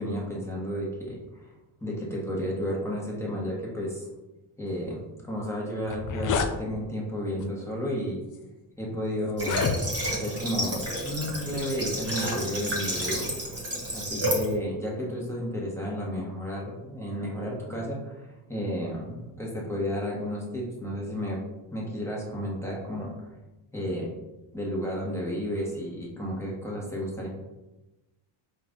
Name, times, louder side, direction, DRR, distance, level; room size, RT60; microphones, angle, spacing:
voice 1, 0.0-1.5 1.8-4.1 4.6-8.2 8.8-9.6 10.1-13.3 13.9-21.4 21.7-23.1 23.7-24.1 24.5-27.3, equal, 5° left, -4 dB, 1.3 m, -32 dB
sound 1, 5.4-5.5 5.8-6.5 7.4-7.6 8.3-8.4 9.3-10.2, left 5 dB, 40° left, 0.4 m, -29 dB
Water / Water tap faucet, 9.4-14.5, equal, 30° right, 1.5 m, -31 dB
4.5 x 2.7 x 3.6 m, 1.0 s
cardioid pair, 105°, 50 cm